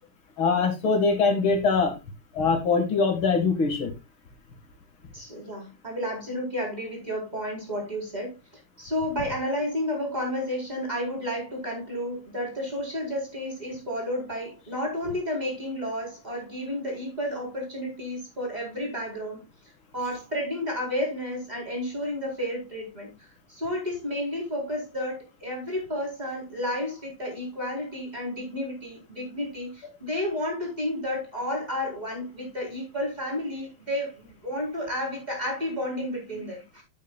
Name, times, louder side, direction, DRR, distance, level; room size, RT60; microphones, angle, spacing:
voice 1, 0.4-2.0 2.3-3.9, left 4 dB, 80° left, 4 dB, 2.8 m, -23 dB
voice 2, 5.1-8.3 8.8-19.4 19.9-23.1 23.5-36.8, left 1 dB, 20° right, -1 dB, 4.5 m, -31 dB
12.0 x 8.7 x 2.4 m, 0.23 s
omnidirectional pair, 2.2 m